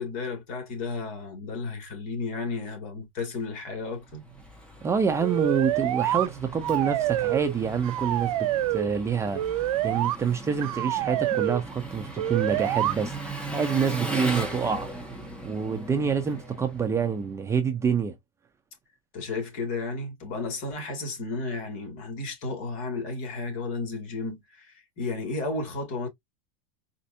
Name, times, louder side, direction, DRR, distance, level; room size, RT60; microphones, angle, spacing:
voice 1, 0.0-4.2 19.1-26.1, left 3 dB, 50° left, 2.1 m, -33 dB
Engine, 3.9-17.4, right 2 dB, 5° left, 1.1 m, -38 dB
voice 2, 4.8-9.4 9.8-13.2 13.5-14.9 15.4-18.1, right 6 dB, 15° right, 0.5 m, -27 dB
sound 1, 5.2-6.3 6.6-7.6 7.8-8.9 9.3-10.2 10.6-11.6 12.2-12.9, right 13 dB, 80° right, 0.6 m, -27 dB
4.3 x 2.6 x 2.6 m
supercardioid pair, 135°, 18 cm